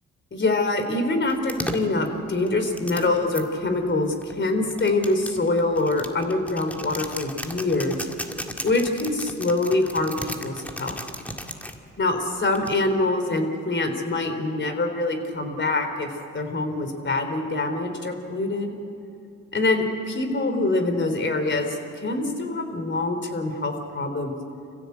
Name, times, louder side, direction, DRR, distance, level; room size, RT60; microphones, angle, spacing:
voice 1, 0.3-8.1 8.6-11.0 12.0-16.1 16.3-18.8 19.5-24.4, left 2 dB, 40° left, 6 dB, 3.6 m, -25 dB
sound 1, 1.3-3.4 4.2-11.8 12.5-13.0, equal, 5° left, 2.0 m, -35 dB
26.5 x 15.5 x 8.2 m, 2.6 s
supercardioid pair, 70°, 30 cm